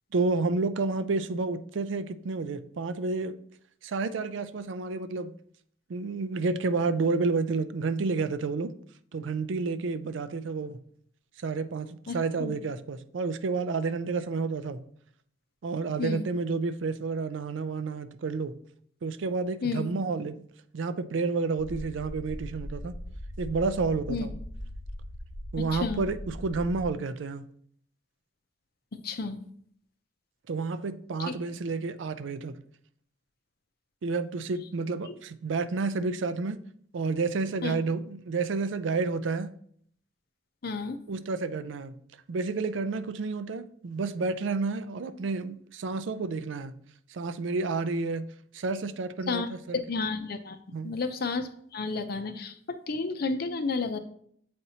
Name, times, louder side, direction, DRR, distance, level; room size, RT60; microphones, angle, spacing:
voice 1, 0.1-3.4 3.8-5.3 5.9-8.7 9.1-10.8 11.4-14.8 15.6-18.5 19.0-20.4 20.7-22.9 23.4-24.3 25.5-27.4 30.5-32.6 34.0-36.6 36.9-39.5 41.1-41.9 42.3-46.7 47.1-48.3 48.5-49.8 50.7-50.9, right 4 dB, 85° right, 0.4 m, -30 dB
voice 2, 12.1-12.5 16.0-16.2 19.6-19.9 24.1-24.3 25.7-26.0 28.9-29.4 31.3-31.4 35.1-35.2 37.6-37.7 40.6-41.0 49.3-49.5 49.7-50.6 50.8-54.0, left 4 dB, 55° left, 0.6 m, -31 dB
sound 1, 21.6-26.9, equal, 90° left, 1.2 m, -40 dB
8.0 x 4.3 x 2.8 m
head